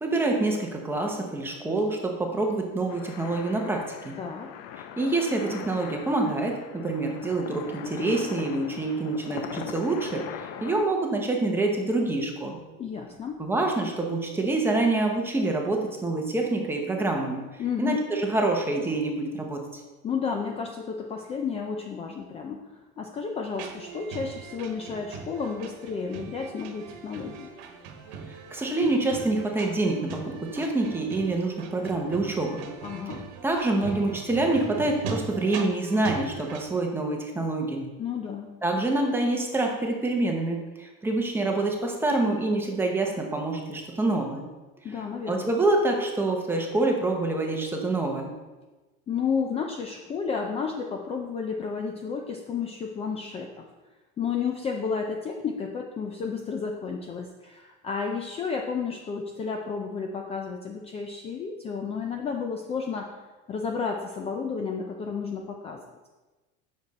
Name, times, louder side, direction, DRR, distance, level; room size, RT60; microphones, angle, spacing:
voice 1, 0.0-4.2 5.0-12.6 13.4-17.4 17.8-19.6 28.5-32.7 33.4-37.9 38.6-44.4 45.3-48.3, right 2 dB, 5° right, 1 dB, 0.9 m, -26 dB
sound 1, 2.9-10.8, left 9 dB, 70° left, 0.7 m, -41 dB
voice 2, 4.2-4.5 12.8-13.4 17.6-18.0 20.0-27.5 32.8-33.3 38.0-38.6 44.8-45.5 49.1-53.7 54.2-63.2 63.5-65.8, left 5 dB, 20° left, 2 dB, 0.5 m, -32 dB
sound 2, 23.5-36.7, right 5 dB, 85° right, 1.3 m, -40 dB
8.8 x 6.4 x 4.1 m, 1.2 s
cardioid pair, 175°, 30 cm